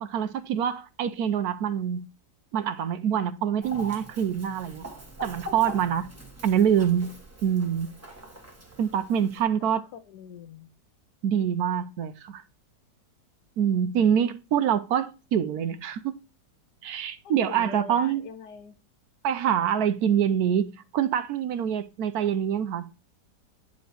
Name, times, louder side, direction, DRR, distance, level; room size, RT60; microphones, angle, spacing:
voice 1, 0.0-2.0 2.5-4.9 5.2-6.1 6.4-7.1 7.4-7.9 8.8-9.8 11.2-12.4 13.6-16.2 16.8-18.2 19.2-22.9, right 9 dB, 70° right, 1.0 m, -25 dB
Chicken rooster, 3.6-9.4, equal, 10° right, 1.2 m, -43 dB
voice 2, 9.7-10.7 17.2-18.8, left 6 dB, 70° left, 1.3 m, -42 dB
9.2 x 5.1 x 2.8 m
omnidirectional pair, 1.9 m